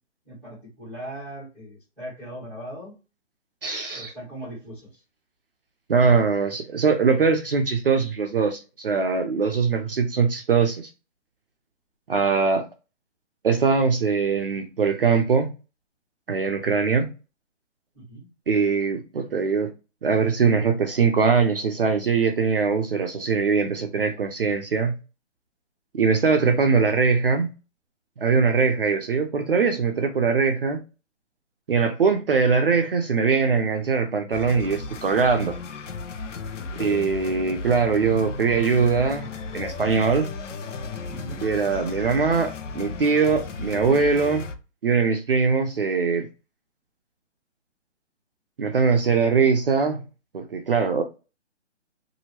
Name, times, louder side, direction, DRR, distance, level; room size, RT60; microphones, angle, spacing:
voice 1, 0.3-2.9 3.9-4.9 17.9-18.3 36.6-37.1 41.1-41.5, equal, ahead, 1.1 m, -39 dB
voice 2, 3.6-4.1 5.9-10.9 12.1-12.7 13.4-15.5 16.3-17.1 18.5-19.7 20.0-25.0 25.9-27.5 28.2-30.8 31.7-35.6 36.8-39.3 39.5-40.3 41.4-44.5 44.8-46.3 48.6-50.0 50.3-51.0, right 5 dB, 50° right, 0.5 m, -22 dB
sound 1, 34.3-44.5, left 4 dB, 80° left, 0.8 m, -35 dB
2.9 x 2.6 x 2.9 m
hypercardioid pair, 170°, 36 cm